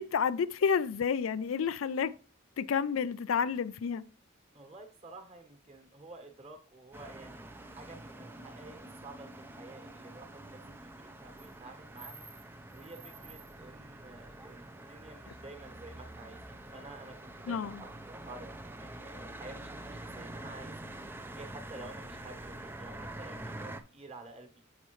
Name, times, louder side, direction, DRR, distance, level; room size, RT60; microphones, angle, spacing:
voice 1, 0.0-2.2 2.6-4.1 17.5-17.8, left 6 dB, 85° left, 0.4 m, -30 dB
voice 2, 4.5-21.1 21.3-24.6, right 2 dB, 30° right, 1.3 m, -51 dB
sound 1, 6.9-23.8, right 1 dB, 10° right, 0.5 m, -46 dB
7.2 x 5.5 x 3.0 m
head